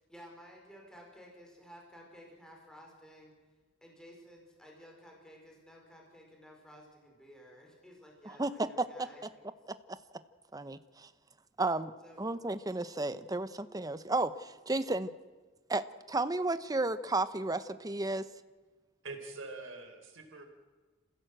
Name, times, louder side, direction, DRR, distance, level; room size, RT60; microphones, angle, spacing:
voice 1, 0.1-3.3 3.8-9.2 12.0-12.2, equal, 5° left, -1 dB, 4.7 m, -54 dB
voice 2, 8.2-8.9 10.5-11.1 11.6-11.9 12.2-15.1 15.7-18.2, right 2 dB, 20° right, 12 dB, 0.9 m, -33 dB
voice 3, 19.0-20.5, right 3 dB, 85° right, 4 dB, 4.1 m, -44 dB
28.0 x 16.0 x 7.8 m, 1.4 s
head